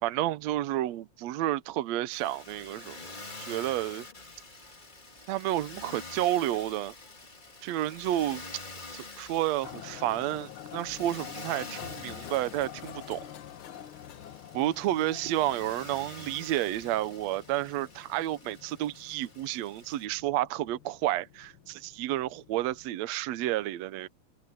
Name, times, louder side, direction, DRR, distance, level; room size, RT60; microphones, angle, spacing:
voice 1, 0.0-3.0 3.4-4.1 5.3-6.9 7.6-8.4 8.9-13.2 14.5-24.1, right 14 dB, 75° right, 1.8 m, -31 dB
Motor vehicle (road), 2.1-20.1, left 3 dB, 20° left, 1.4 m, -47 dB
sound 1, 9.6-22.9, left 11 dB, 85° left, 1.1 m, -47 dB
omnidirectional pair, 3.5 m